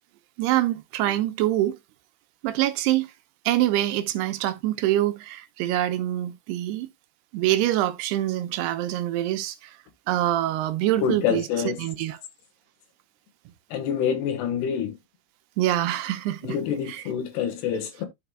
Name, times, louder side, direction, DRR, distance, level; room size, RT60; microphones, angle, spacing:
voice 1, 0.4-1.8 2.4-3.1 3.5-6.9 7.3-9.8 10.1-11.5 11.8-12.2 15.6-16.6 16.9-17.0, right 14 dB, 85° right, 2.7 m, -25 dB
voice 2, 11.0-11.8 13.7-15.0 16.4-18.1, left 8 dB, 75° left, 3.5 m, -26 dB
12.0 x 5.0 x 2.3 m
omnidirectional pair, 4.8 m